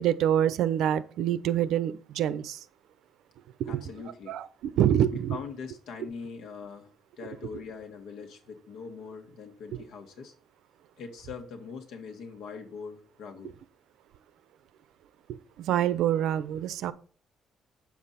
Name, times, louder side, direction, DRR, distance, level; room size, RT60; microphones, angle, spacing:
voice 1, 0.0-2.6 3.7-3.8 4.3-5.4 15.6-16.9, right 10 dB, 80° right, 15 dB, 0.7 m, -26 dB
voice 2, 3.7-4.4 5.1-6.9 7.2-10.3 11.0-13.5, left 5 dB, 75° left, 4 dB, 1.9 m, -42 dB
8.5 x 7.2 x 4.2 m, 0.42 s
cardioid pair, 155°, 0 cm